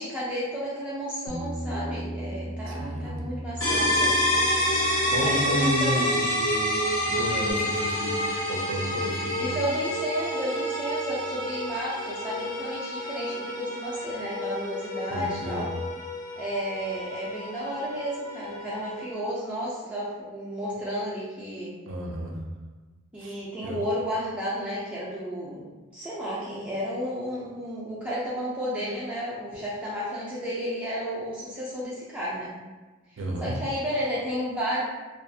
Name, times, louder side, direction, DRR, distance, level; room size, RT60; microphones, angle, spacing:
voice 1, 0.0-4.6 5.2-6.3 9.4-15.7 16.4-21.7 23.1-25.7 25.9-32.5 33.4-34.8, equal, 5° right, -8 dB, 0.4 m, -32 dB
Bass guitar, 1.3-6.0 6.3-7.5, right 1 dB, 65° left, 0.5 m, -37 dB
voice 2, 2.7-3.3 5.1-6.7 7.1-9.7 15.1-15.7 21.9-22.4 23.2-23.8 28.7-29.0 33.2-33.5, equal, 70° right, 0 dB, 0.5 m, -32 dB
sound 1, 3.6-19.2, equal, 90° left, 1.2 m, -28 dB
2.4 x 2.3 x 2.6 m, 1.3 s
head